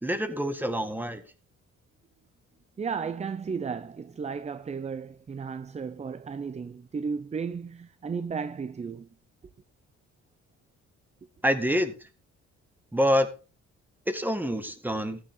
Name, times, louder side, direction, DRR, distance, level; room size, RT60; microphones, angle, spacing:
voice 1, 0.0-1.2 11.4-12.1 12.9-13.3 14.1-15.2, equal, 5° right, 2.0 m, -26 dB
voice 2, 2.8-9.1, right 5 dB, 25° right, 0.6 m, -34 dB
14.5 x 9.7 x 3.8 m
cardioid pair, 105°, 30 cm